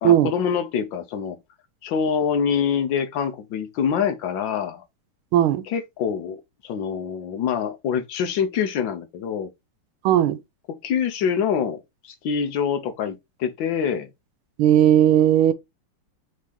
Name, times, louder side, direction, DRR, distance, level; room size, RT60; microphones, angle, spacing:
voice 1, 0.0-1.4 1.8-4.8 5.7-9.5 10.8-11.8 12.0-14.1, left 7 dB, 70° left, 1.4 m, -25 dB
voice 2, 5.3-5.6 10.0-10.4 14.6-15.5, right 11 dB, 75° right, 1.4 m, -16 dB
5.0 x 2.8 x 3.5 m
omnidirectional pair, 2.4 m